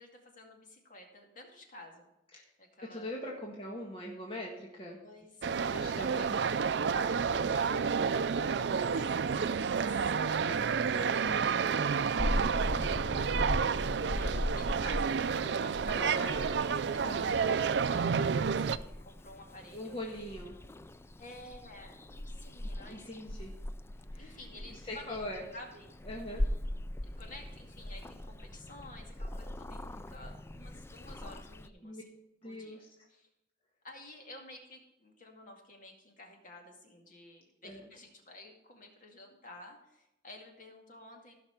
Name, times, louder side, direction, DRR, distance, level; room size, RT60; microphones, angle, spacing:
voice 1, 0.0-2.1 2.6-3.1 5.0-6.0 8.4-9.1 9.5-13.6 14.0-17.0 17.4-20.0 21.2-23.1 24.2-25.2 25.5-26.5 27.0-32.0 32.4-32.8 33.1-33.3 33.8-41.4, left 1 dB, 50° left, 2 dB, 2.1 m, -52 dB
voice 2, 2.9-5.0 5.7-8.0 8.4-8.7 10.1-10.6 17.0-17.4 19.7-20.6 22.6-23.5 24.1-25.4 26.0-26.4 31.8-32.0 32.4-32.9 37.6-37.9, left 1 dB, 30° left, -2 dB, 1.6 m, -43 dB
sound 1, 5.4-18.8, right 6 dB, 70° right, 0.4 m, -30 dB
Purr / Meow, 12.2-31.7, left 1 dB, 15° left, 0.4 m, -39 dB
15.5 x 5.8 x 5.8 m, 0.91 s
head